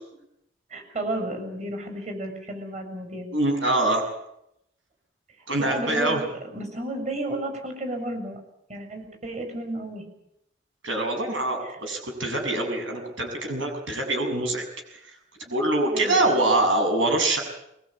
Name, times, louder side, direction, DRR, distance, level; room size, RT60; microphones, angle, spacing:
voice 1, 0.7-3.3 5.6-6.2 6.5-8.4 8.7-10.0 11.6-11.8 15.9-16.3, right 1 dB, 35° right, 5 dB, 6.9 m, -32 dB
voice 2, 3.3-4.0 5.5-6.2 10.8-14.6 15.1-15.2 15.5-17.4, right 2 dB, 80° right, 3 dB, 6.9 m, -24 dB
22.0 x 21.0 x 8.7 m, 0.81 s
head